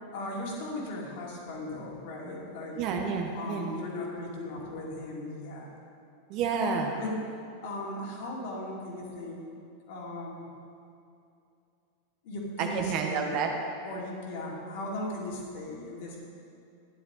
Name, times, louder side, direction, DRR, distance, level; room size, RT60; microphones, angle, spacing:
voice 1, 0.0-2.8 3.3-5.7 6.9-7.2 7.6-9.4 9.9-10.5 12.2-13.4 13.8-16.2, left 1 dB, 50° left, -3 dB, 2.8 m, -37 dB
voice 2, 2.8-3.7 6.3-6.9 12.6-13.5, right 5 dB, 40° right, 3 dB, 1.2 m, -29 dB
13.5 x 10.5 x 4.1 m, 2.5 s
figure-of-eight pair, 90°, 0 cm